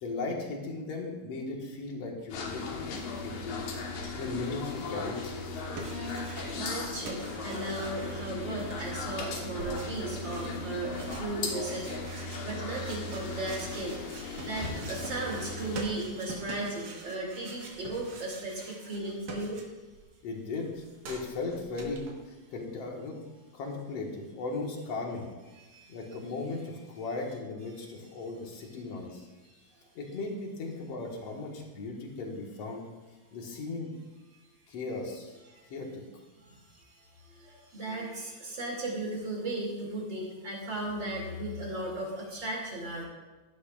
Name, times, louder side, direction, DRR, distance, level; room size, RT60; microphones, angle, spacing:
voice 1, 0.0-2.9 3.2-3.7 4.2-5.6 20.2-20.7 21.0-22.1 22.5-23.2 23.5-25.3 25.9-29.3 30.0-32.8 33.3-33.9 34.7-35.4 35.7-36.0, left 3 dB, 60° left, 0 dB, 2.5 m, -37 dB
sound 1, 2.3-15.9, left 3 dB, 85° left, 2.8 m, -37 dB
sound 2, 5.4-6.8 7.0-20.0 20.3-22.1, right 3 dB, 70° right, 2.7 m, -46 dB
voice 2, 5.6-19.6 25.5-26.0 35.5-35.6 36.4-36.9 37.2-43.0, right 2 dB, 40° right, -3 dB, 3.1 m, -36 dB
15.5 x 11.0 x 2.5 m, 1.2 s
omnidirectional pair, 3.4 m